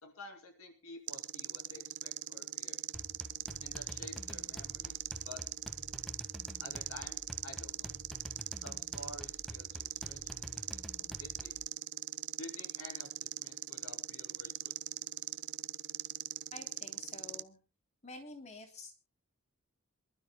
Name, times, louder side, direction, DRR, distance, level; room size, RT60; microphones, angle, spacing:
voice 1, 0.0-2.8 3.6-5.0 5.2-5.4 6.6-7.9 8.6-11.6 12.4-14.7, left 2 dB, 70° left, 6 dB, 2.7 m, -51 dB
sound 1, 1.1-17.4, right 13 dB, 55° right, 0.6 m, -41 dB
sound 2, 2.9-11.7, equal, ahead, 1.6 m, -49 dB
voice 2, 16.5-17.6 18.0-18.9, left 2 dB, 35° left, 5 dB, 3.0 m, -49 dB
27.5 x 12.5 x 2.2 m, 0.31 s
head